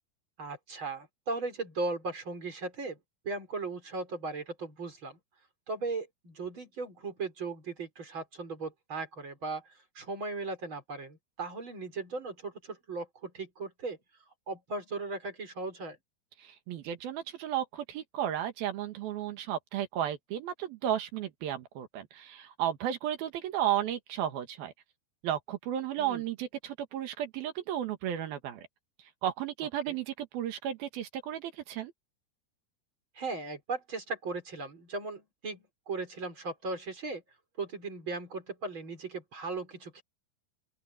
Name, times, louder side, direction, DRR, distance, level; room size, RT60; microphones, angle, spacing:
voice 1, 0.4-3.0 3.2-5.2 5.7-9.6 10.0-14.0 14.5-16.0 26.0-26.2 29.9-30.0 33.2-37.2 37.6-40.0, right 3 dB, 30° right, 5.4 m, -37 dB
voice 2, 16.4-24.7 25.2-28.7 29.2-31.9, right 11 dB, 70° right, 3.3 m, -34 dB
open air
omnidirectional pair, 4.7 m